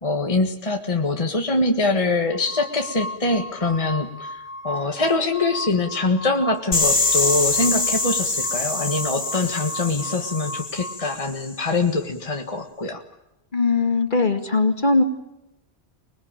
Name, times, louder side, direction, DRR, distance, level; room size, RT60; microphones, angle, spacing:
voice 1, 0.0-13.0, left 3 dB, 30° left, 3 dB, 1.7 m, -24 dB
sound 1, 2.3-11.2, left 1 dB, 15° left, 1.4 m, -36 dB
sound 2, 6.7-11.5, left 3 dB, 75° left, 3.2 m, -24 dB
voice 2, 13.5-15.0, left 3 dB, 45° left, 6 dB, 2.3 m, -20 dB
26.0 x 21.0 x 9.0 m, 0.91 s
omnidirectional pair, 1.1 m